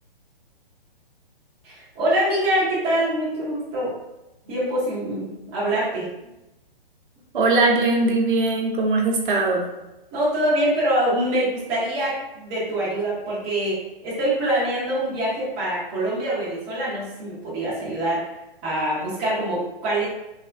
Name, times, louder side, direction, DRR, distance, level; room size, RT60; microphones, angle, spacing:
voice 1, 1.6-3.9 4.4-6.1 10.1-18.2 18.6-20.1, right 1 dB, 15° right, -8 dB, 0.4 m, -24 dB
voice 2, 7.3-9.6, right 3 dB, 60° right, 1 dB, 0.6 m, -20 dB
3.2 x 2.0 x 2.4 m, 0.96 s
hypercardioid pair, 135°, 29 cm